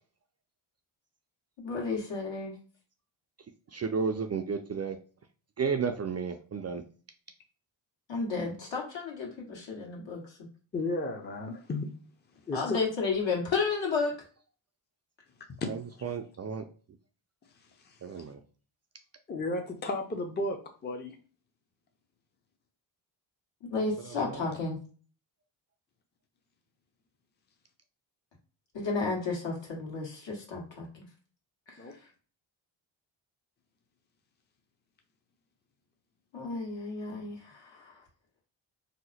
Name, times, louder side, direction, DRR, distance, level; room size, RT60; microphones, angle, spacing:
voice 1, 1.6-2.5 8.1-10.2 12.5-14.1 23.7-24.8 28.7-31.0 31.7-31.8 36.3-37.9, left 4 dB, 65° left, -1 dB, 1.5 m, -32 dB
voice 2, 3.7-5.0 5.6-6.8 15.7-16.6 18.0-18.4 24.2-24.5, right 5 dB, 35° right, 6 dB, 0.4 m, -33 dB
voice 3, 10.7-11.9 12.5-12.8 15.6-15.7 19.3-21.1 31.8-31.9, left 2 dB, 20° left, 4 dB, 0.6 m, -33 dB
2.8 x 2.1 x 4.1 m, 0.39 s
cardioid pair, 75°, 48 cm